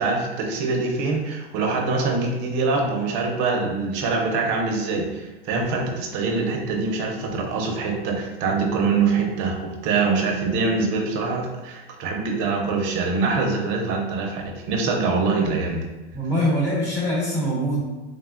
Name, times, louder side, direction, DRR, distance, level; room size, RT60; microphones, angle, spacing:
voice 1, 0.0-15.9, right 4 dB, 35° right, 1 dB, 0.4 m, -24 dB
voice 2, 16.1-17.8, equal, 35° left, -7 dB, 1.0 m, -23 dB
3.2 x 2.1 x 2.3 m, 1.1 s
supercardioid pair, 145°, 33 cm